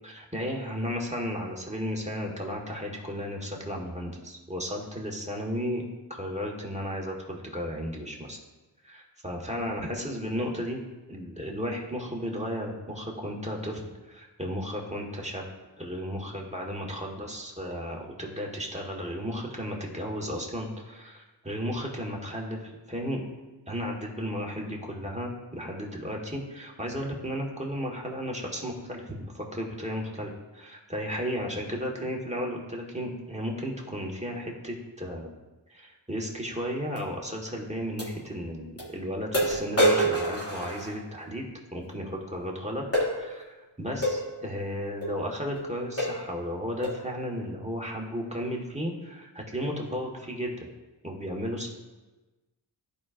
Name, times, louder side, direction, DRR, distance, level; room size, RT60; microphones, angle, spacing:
voice 1, 0.0-5.8 6.1-8.4 8.8-10.8 11.1-15.5 15.8-23.2 23.7-35.3 35.7-41.4 41.7-42.8 43.1-50.7 51.0-51.7, equal, 15° right, -1 dB, 1.6 m, -34 dB
sound 1, 37.0-37.1 38.0-38.1 38.8-38.9 39.3-41.3 42.9-43.1 44.0-44.2 45.0-45.2 45.6-45.7 46.0-46.3 46.8-47.1, right 1 dB, 30° left, 2.5 m, -26 dB
14.0 x 5.0 x 2.6 m, 1.2 s
wide cardioid pair, 45°, 45 cm